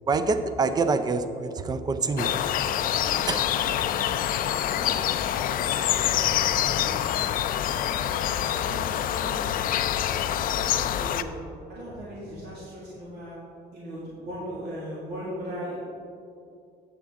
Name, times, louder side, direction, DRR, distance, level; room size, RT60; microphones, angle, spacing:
voice 1, 0.1-2.3 3.3-3.4, right 4 dB, 25° right, 10 dB, 0.5 m, -25 dB
sound 1, 2.2-11.2, left 10 dB, 55° left, 0.4 m, -26 dB
voice 2, 3.0-5.0 5.3-7.9 8.5-11.3 11.7-13.4 13.7-15.8, equal, 75° right, -7 dB, 2.0 m, -40 dB
8.4 x 8.0 x 3.6 m, 2.5 s
cardioid pair, 110°, 17 cm